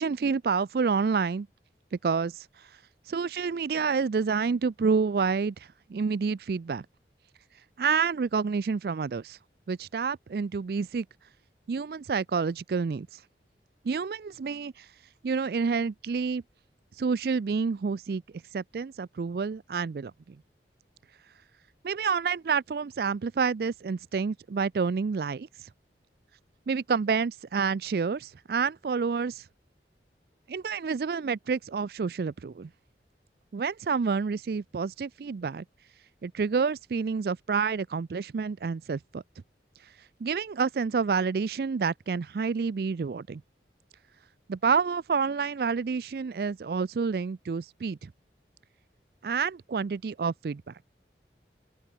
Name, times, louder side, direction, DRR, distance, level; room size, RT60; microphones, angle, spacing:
voice 1, 0.0-1.5 2.0-2.5 3.1-6.9 7.8-9.4 9.7-11.1 11.7-13.2 13.8-14.9 15.2-16.4 17.0-18.2 18.5-20.1 21.8-25.5 26.7-29.4 30.5-32.7 33.5-35.6 36.2-39.2 40.2-43.4 44.5-48.1 49.2-50.7, right 5 dB, 55° right, 0.4 m, -28 dB
open air
head